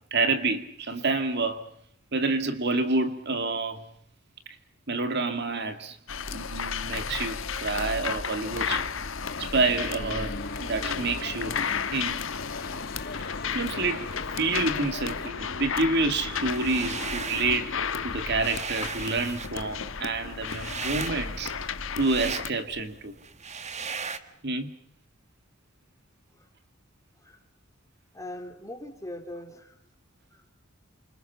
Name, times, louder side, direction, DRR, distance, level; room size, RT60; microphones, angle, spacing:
voice 1, 0.1-1.7 2.1-3.9 4.9-6.0 6.3-8.9 9.4-11.6 11.9-12.2 13.5-14.1 14.3-21.5 22.0-23.1 24.4-24.7, right 3 dB, 50° right, 2.1 m, -28 dB
sound 1, 6.1-22.5, left 6 dB, 65° left, 1.2 m, -33 dB
sound 2, 9.3-15.3, left 3 dB, 45° left, 1.4 m, -40 dB
sound 3, 16.4-17.6 18.0-24.2, right 5 dB, 35° right, 1.7 m, -36 dB
voice 2, 28.1-29.8 30.3-30.4, left 1 dB, 15° left, 3.6 m, -41 dB
29.5 x 27.0 x 5.7 m
head